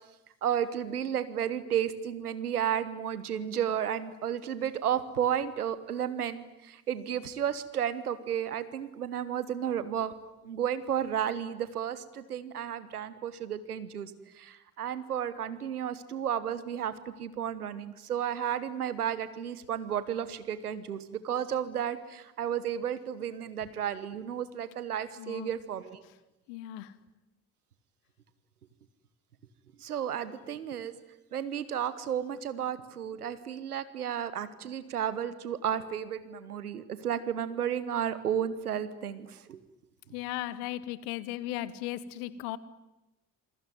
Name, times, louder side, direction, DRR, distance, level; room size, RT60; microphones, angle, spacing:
voice 1, 0.4-10.1 10.4-26.0 29.8-30.9 31.3-39.6, right 9 dB, 90° right, 1.2 m, -33 dB
voice 2, 25.2-25.5 26.5-27.0 40.1-42.6, left 14 dB, 75° left, 1.3 m, -36 dB
27.0 x 22.0 x 9.4 m
figure-of-eight pair, 45°, 44 cm